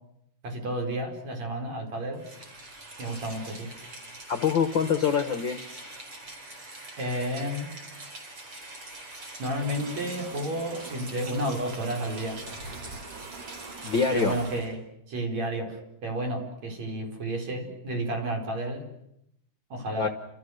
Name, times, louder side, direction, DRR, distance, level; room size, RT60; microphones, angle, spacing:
voice 1, 0.4-2.2 3.0-3.7 7.0-7.7 9.4-12.4 14.1-14.8 15.1-18.9 19.7-20.1, right 1 dB, 60° right, 3 dB, 6.0 m, -31 dB
Rain, 2.1-14.7, right 2 dB, 40° right, 5.3 m, -43 dB
voice 2, 4.3-5.6 13.8-14.4 20.0-20.1, left 6 dB, 55° left, 8 dB, 1.5 m, -25 dB
sound 1, 9.5-14.6, right 5 dB, 85° right, 3.5 m, -45 dB
30.0 x 27.5 x 6.5 m, 0.77 s
omnidirectional pair, 3.6 m